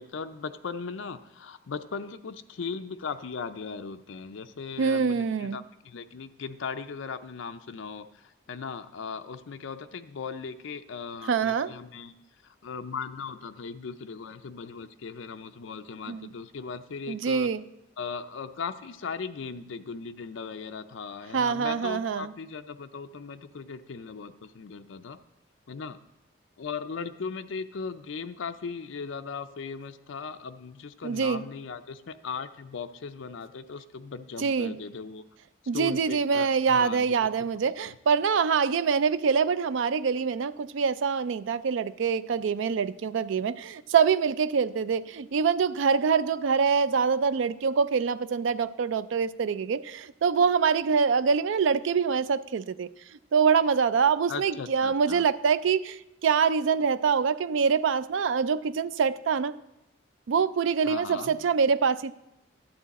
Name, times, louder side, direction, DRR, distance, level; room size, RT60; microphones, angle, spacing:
voice 1, 0.0-12.1 12.4-17.5 18.0-25.2 25.7-26.0 26.6-35.2 35.7-37.1 37.4-37.5 37.8-38.0 54.3-55.2 60.8-61.5, left 5 dB, 70° left, 8 dB, 0.5 m, -38 dB
voice 2, 4.8-5.6 11.3-11.7 16.1-16.3 17.1-17.6 21.3-22.3 31.0-31.4 34.4-34.8 35.7-52.9 53.3-59.5 60.3-62.1, right 6 dB, 70° right, 15 dB, 0.4 m, -25 dB
11.5 x 8.4 x 4.1 m, 0.91 s
head